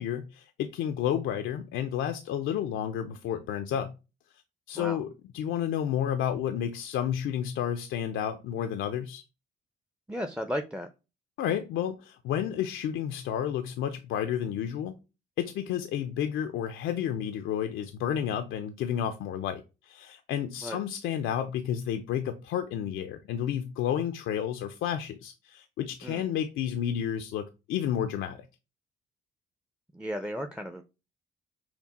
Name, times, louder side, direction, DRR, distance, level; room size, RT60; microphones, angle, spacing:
voice 1, 0.0-3.9 4.7-9.2 11.4-14.9 15.4-28.4, left 9 dB, 85° left, 0.5 m, -31 dB
voice 2, 10.1-10.9 20.6-20.8 26.0-26.3 29.9-30.8, equal, 5° right, 0.5 m, -34 dB
5.9 x 2.1 x 4.1 m
cardioid pair, 90°, 20 cm